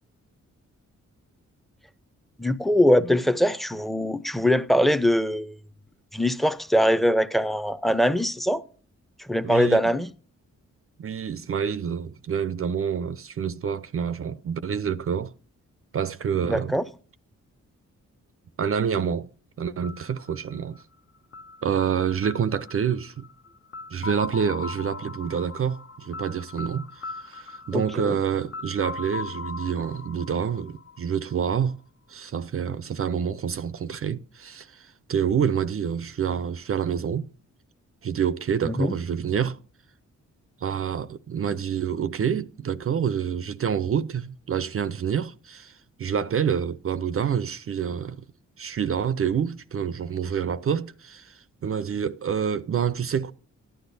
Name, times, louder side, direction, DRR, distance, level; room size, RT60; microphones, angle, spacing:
voice 1, 2.4-5.6 6.1-8.6 9.2-10.1 16.5-16.8 27.7-28.2 38.6-39.0, equal, ahead, 0.6 m, -22 dB
voice 2, 9.4-9.8 11.0-15.3 15.9-16.7 18.6-19.3 19.6-20.8 21.6-23.3 23.9-26.9 27.2-31.8 32.1-37.3 38.0-39.6 40.6-45.7 46.0-48.2 48.6-51.3 51.6-53.3, right 7 dB, 50° right, 0.5 m, -27 dB
sound 1, 19.8-31.6, left 4 dB, 50° left, 0.8 m, -40 dB
14.0 x 10.0 x 2.6 m
cardioid pair, 75°, 30 cm